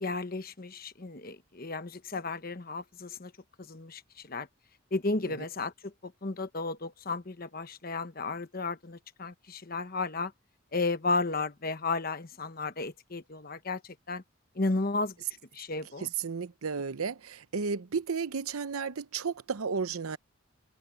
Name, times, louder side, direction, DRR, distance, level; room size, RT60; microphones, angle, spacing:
voice 1, 0.0-3.3 3.6-4.5 4.9-10.3 10.7-14.2 14.6-15.1 15.5-16.1, left 3 dB, 45° left, 1.1 m, -33 dB
voice 2, 16.0-20.2, right 5 dB, 85° right, 0.7 m, -33 dB
head